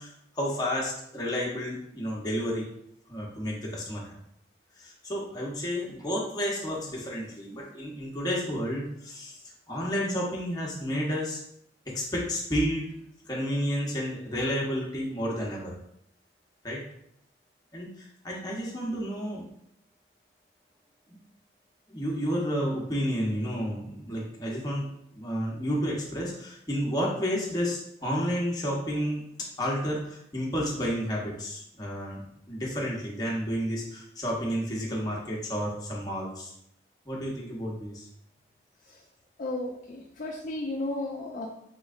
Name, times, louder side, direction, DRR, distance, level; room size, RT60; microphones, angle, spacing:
voice 1, 0.0-2.7 3.1-4.1 4.8-9.4 9.7-11.4 11.9-12.9 13.3-15.7 16.6-16.8 17.7-19.5 21.1-21.2 21.9-32.2 32.5-36.5 37.1-38.1, equal, 20° left, -3 dB, 0.8 m, -31 dB
voice 2, 39.4-41.5, left 2 dB, 45° left, -2 dB, 0.4 m, -34 dB
4.2 x 3.0 x 2.4 m, 0.72 s
head